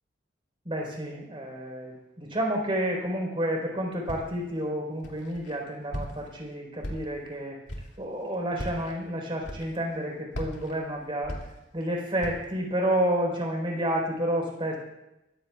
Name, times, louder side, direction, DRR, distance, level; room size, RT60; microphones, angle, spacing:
voice 1, 0.6-7.6 8.0-11.4 11.7-14.8, right 1 dB, 30° right, 0 dB, 4.4 m, -30 dB
Walk footsteps, 4.1-4.5 5.0-5.5 5.9-6.4 6.8-7.3 7.7-8.0 8.5-8.9 9.4-9.9 10.3-11.8 12.2-12.6, equal, 85° left, 2.7 m, -38 dB
22.5 x 15.0 x 2.5 m, 0.93 s
head